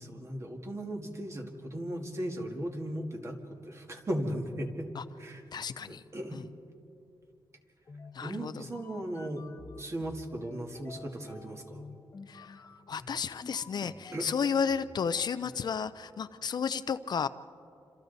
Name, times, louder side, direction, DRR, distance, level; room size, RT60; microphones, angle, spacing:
voice 1, 0.0-4.9 5.2-5.4 5.9-6.5 8.2-9.5 9.7-11.9 13.8-14.3, right 1 dB, 35° right, 3 dB, 2.0 m, -37 dB
voice 2, 5.5-6.0 6.3-6.4 8.1-8.6 12.3-17.3, left 6 dB, 55° left, 13 dB, 0.5 m, -33 dB
sound 1, 7.9-15.8, left 4 dB, 35° left, 1.1 m, -50 dB
28.0 x 26.5 x 4.1 m, 2.6 s
wide cardioid pair, 135°, 9 cm